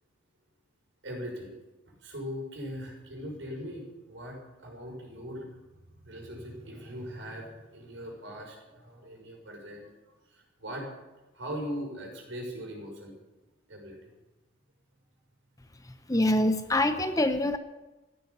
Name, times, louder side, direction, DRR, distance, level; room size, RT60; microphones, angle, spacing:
voice 1, 1.0-1.5 2.0-5.5 6.0-9.9 10.3-10.9 11.3-13.1 13.7-14.1, equal, 60° right, -1 dB, 6.4 m, -40 dB
voice 2, 16.1-17.6, left 1 dB, 15° left, 9 dB, 0.7 m, -25 dB
15.5 x 10.5 x 8.6 m, 1.1 s
head